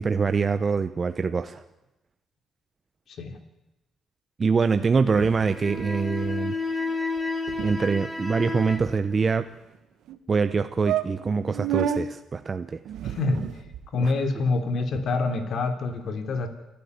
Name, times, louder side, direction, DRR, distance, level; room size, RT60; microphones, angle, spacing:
voice 1, 0.0-1.6 4.4-6.5 7.6-9.5 10.3-12.8 14.0-14.1, right 5 dB, 35° right, 9 dB, 0.9 m, -24 dB
sound 1, 5.1-6.0 6.2-6.4 6.7-6.9 7.2-7.3 7.5-7.7 8.3-9.4 10.1-10.2 10.5-10.6 10.8-12.0 12.9-13.9, right 10 dB, 80° right, 1.4 m, -31 dB
sound 2, 5.3-8.8, left 3 dB, 10° left, 3.9 m, -31 dB
voice 2, 13.0-13.5 13.9-16.5, left 3 dB, 60° left, 6 dB, 3.3 m, -26 dB
28.5 x 12.5 x 9.7 m, 0.96 s
cardioid pair, 90°, 0 cm